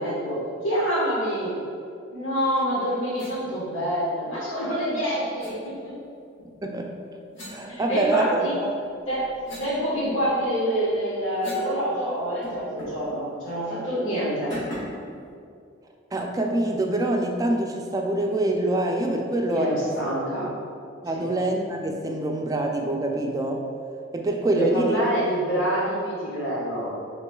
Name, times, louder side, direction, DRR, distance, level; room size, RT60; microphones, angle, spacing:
voice 1, 0.0-1.6 2.1-5.9 7.7-8.5 9.1-9.3 9.6-14.5 19.5-20.5 21.1-21.3 24.4-26.9, equal, 90° left, -8 dB, 1.3 m, -26 dB
sound 1, 3.2-3.4 5.4-5.6 7.3-8.4 8.9-11.8 12.0-12.1 12.4-13.1 13.4-13.6 14.5-15.1, left 1 dB, 65° left, 1.3 m, -41 dB
voice 2, 7.5-8.7 16.1-19.9 21.0-23.7 24.1-25.0, right 1 dB, 20° right, 2 dB, 0.3 m, -25 dB
5.9 x 3.0 x 2.3 m, 2.4 s
head